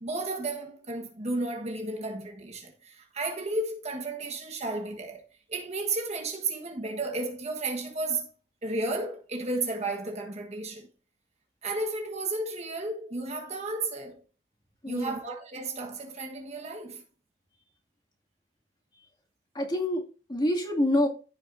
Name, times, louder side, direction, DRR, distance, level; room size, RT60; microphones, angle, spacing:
voice 1, 0.0-8.3 8.6-10.9 11.6-14.2 14.8-17.0, right 2 dB, 40° right, 1.4 m, -33 dB
voice 2, 14.8-15.2 19.5-21.1, left 1 dB, 25° left, 2.3 m, -27 dB
15.0 x 5.7 x 2.6 m
head